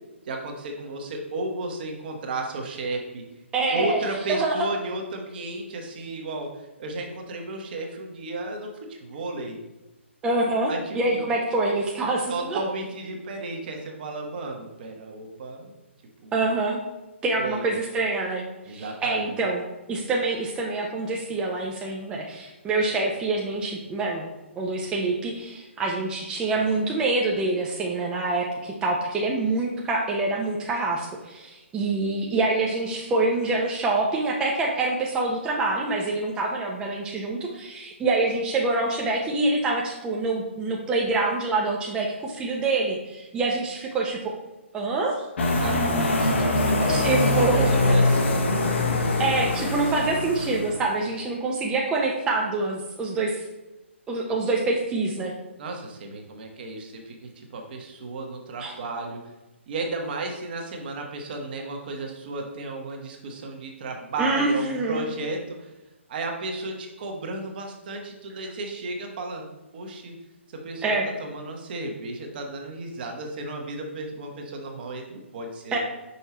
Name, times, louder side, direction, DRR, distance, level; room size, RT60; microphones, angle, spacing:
voice 1, 0.2-3.2 3.7-9.6 10.7-11.2 12.3-15.7 16.2-16.4 17.4-17.7 18.7-19.3 45.5-48.5 54.3-54.4 55.6-59.3 59.7-65.7 66.1-69.5 69.7-70.1 70.5-75.8, right 2 dB, 45° right, 2 dB, 1.2 m, -34 dB
voice 2, 3.5-4.0 4.3-4.7 10.2-12.6 16.3-16.8 17.2-24.3 24.6-44.4 44.7-45.3 46.9-47.7 49.2-53.4 54.1-55.3 58.6-58.7 64.2-65.1 70.8-71.1 75.7-75.8, right 2 dB, 15° right, -2 dB, 0.6 m, -26 dB
sound 1, 45.4-50.9, left 2 dB, 65° left, 1.3 m, -23 dB
5.5 x 4.5 x 4.3 m, 1.1 s
hypercardioid pair, 145°, 7 cm